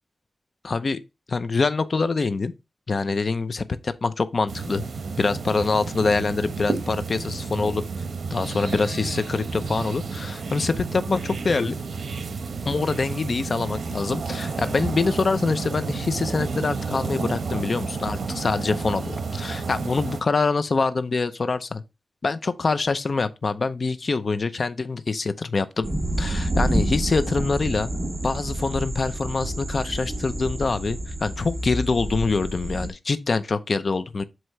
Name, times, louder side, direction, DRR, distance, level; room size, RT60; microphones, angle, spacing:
voice 1, 0.6-1.0 1.3-2.5 2.9-4.8 5.2-7.8 8.3-11.8 12.7-21.8 22.2-25.9 26.2-27.9 28.2-34.2, left 4 dB, 50° left, 0.7 m, -25 dB
sound 1, 4.5-20.2, right 4 dB, 80° right, 1.0 m, -31 dB
sound 2, 25.8-32.9, right 1 dB, 30° right, 2.7 m, -28 dB
7.9 x 3.1 x 5.6 m
wide cardioid pair, 100°, 0 cm